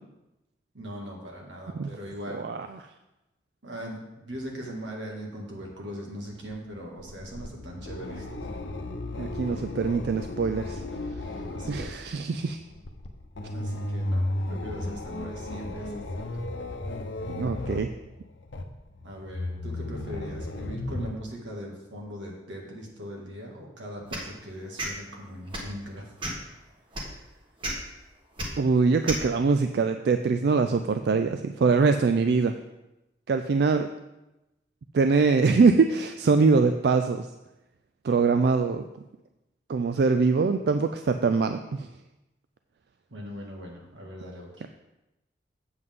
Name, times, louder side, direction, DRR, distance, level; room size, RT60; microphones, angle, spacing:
voice 1, 0.7-2.5 3.6-8.5 11.5-12.0 13.5-15.9 19.0-26.1 43.1-44.7, equal, 85° right, -1 dB, 1.9 m, -40 dB
sound 1, 6.2-21.1, left 1 dB, 75° left, 0.7 m, -35 dB
voice 2, 9.2-10.8 11.7-12.6 17.3-17.9 28.6-32.5 33.3-33.9 34.9-37.3 38.0-38.8 39.7-41.9 44.6-44.7, right 4 dB, 60° right, 8 dB, 0.3 m, -23 dB
sound 2, 24.1-24.3 24.8-24.9 25.5-25.7 26.2-26.5 26.9-27.1 27.6-27.7 28.4-28.5 29.1-29.2, right 1 dB, 30° right, 1.3 m, -31 dB
7.9 x 7.7 x 3.7 m, 0.97 s
head